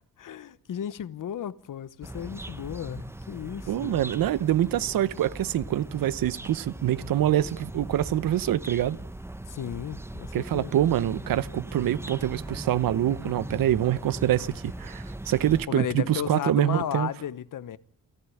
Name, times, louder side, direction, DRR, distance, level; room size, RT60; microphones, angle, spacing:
voice 1, 0.2-4.0 9.5-10.7 15.7-17.8, left 10 dB, 65° left, 1.0 m, -34 dB
sound 1, 2.0-15.7, right 1 dB, 5° right, 0.9 m, -39 dB
voice 2, 3.7-9.0 10.3-17.1, right 12 dB, 75° right, 0.9 m, -25 dB
29.0 x 13.0 x 9.9 m
cardioid pair, 90°, 34 cm